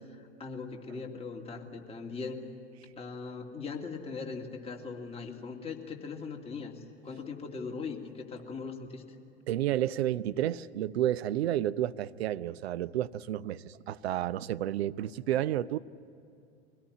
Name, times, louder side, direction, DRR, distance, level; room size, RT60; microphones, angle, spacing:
voice 1, 0.1-2.4 3.0-6.7 7.0-9.0, left 4 dB, 20° left, 0 dB, 2.6 m, -40 dB
voice 2, 9.5-15.8, right 12 dB, 70° right, 15 dB, 0.7 m, -31 dB
24.5 x 17.5 x 9.9 m, 2.7 s
hypercardioid pair, 90°, 33 cm